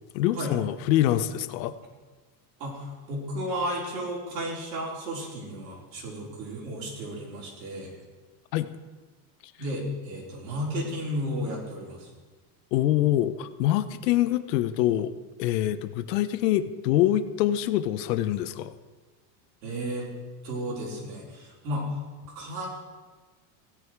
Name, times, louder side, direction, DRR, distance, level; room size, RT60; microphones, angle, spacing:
voice 1, 0.1-1.7 8.5-8.7 12.7-15.1 15.4-18.7, left 13 dB, 75° left, 13 dB, 0.9 m, -25 dB
voice 2, 2.6-7.9 9.6-12.1 19.6-20.1 20.4-21.9 22.3-22.7, equal, 90° right, -3 dB, 4.4 m, -33 dB
15.5 x 9.9 x 4.7 m, 1.4 s
supercardioid pair, 150°, 49 cm